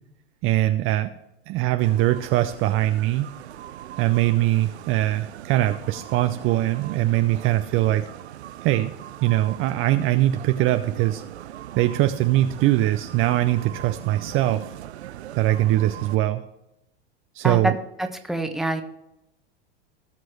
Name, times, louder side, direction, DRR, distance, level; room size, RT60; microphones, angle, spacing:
voice 1, 0.4-1.1 1.5-3.3 4.0-8.0 8.6-8.9 9.2-11.2 11.8-14.6 15.4-16.4 17.3-17.8, right 15 dB, 40° right, 8 dB, 0.6 m, -22 dB
sound 1, 1.8-16.2, right 12 dB, 85° right, 0.5 m, -40 dB
voice 2, 18.0-18.8, right 1 dB, ahead, 5 dB, 1.2 m, -25 dB
17.5 x 6.2 x 3.1 m, 0.87 s
hypercardioid pair, 100°, 32 cm